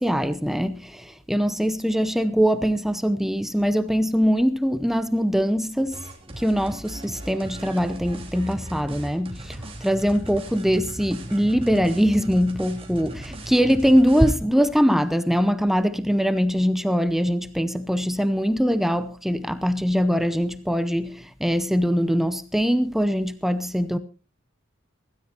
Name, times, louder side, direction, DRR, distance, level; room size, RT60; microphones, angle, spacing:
voice 1, 0.0-6.0 6.4-24.0, equal, ahead, 0.7 m, -22 dB
Runner Loop, 5.9-14.3, right 1 dB, 25° right, 2.9 m, -38 dB
24.5 x 13.5 x 2.9 m
head